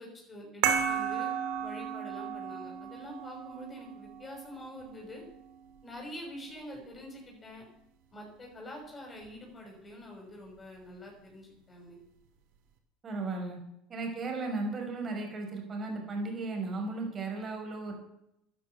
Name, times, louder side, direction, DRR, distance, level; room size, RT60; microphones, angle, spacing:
voice 1, 0.0-1.3 1.6-5.2 5.8-7.6 8.1-12.0, left 1 dB, 25° left, 0 dB, 6.3 m, -46 dB
sound 1, 0.6-5.7, right 8 dB, 75° right, 2.8 m, -34 dB
voice 2, 13.0-13.6 13.9-17.9, right 3 dB, 30° right, 2 dB, 5.5 m, -35 dB
12.0 x 11.0 x 8.3 m, 0.80 s
supercardioid pair, 110°, 0 cm